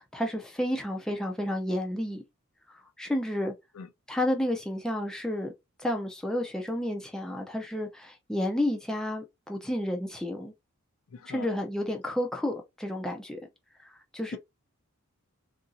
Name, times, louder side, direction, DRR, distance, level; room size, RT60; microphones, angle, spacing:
voice 1, 0.0-2.2 2.7-3.5 4.1-5.5 5.8-10.5 11.3-13.4 13.8-14.4, left 1 dB, 5° left, 0.4 m, -31 dB
voice 2, 11.1-11.6, left 5 dB, 75° left, 0.4 m, -42 dB
2.8 x 2.6 x 2.5 m
head